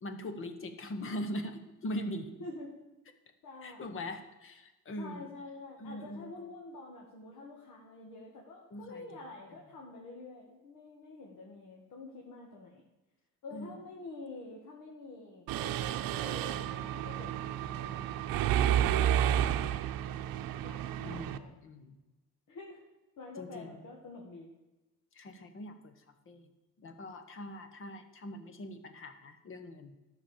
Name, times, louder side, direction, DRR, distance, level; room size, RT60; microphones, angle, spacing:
voice 1, 0.0-2.4 3.6-5.3 5.8-6.5 8.7-9.2 13.5-13.7 18.9-19.5 21.0-22.0 23.4-23.8 25.1-26.5 26.8-30.0, left 1 dB, 35° left, 8 dB, 1.2 m, -42 dB
voice 2, 2.4-2.7 3.4-3.9 5.0-12.8 13.4-18.1 20.6-21.5 22.5-22.9 23.2-24.5, left 3 dB, 60° left, -1 dB, 1.9 m, -47 dB
Mechanisms, 15.5-21.4, right 10 dB, 75° right, 0.7 m, -31 dB
13.0 x 6.1 x 7.1 m, 1.1 s
cardioid pair, 165°, 34 cm